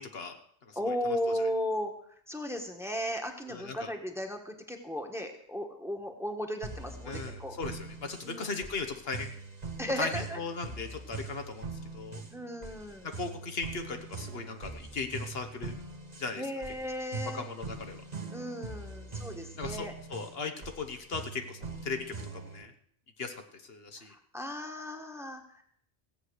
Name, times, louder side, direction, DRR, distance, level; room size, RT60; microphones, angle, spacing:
voice 1, 0.0-1.4 3.5-3.9 7.1-9.3 10.0-12.2 13.0-15.7 16.2-16.5 17.3-18.0 19.6-22.7 23.2-24.2, left 4 dB, 65° left, 6 dB, 1.3 m, -38 dB
voice 2, 0.7-1.9 2.3-7.6 8.2-8.6 9.8-10.4 12.3-13.1 16.4-17.4 18.3-19.9 24.1-25.6, equal, ahead, 4 dB, 1.5 m, -35 dB
sound 1, 6.6-22.6, right 4 dB, 40° right, 1.4 m, -42 dB
16.0 x 8.1 x 6.4 m, 0.66 s
omnidirectional pair, 1.1 m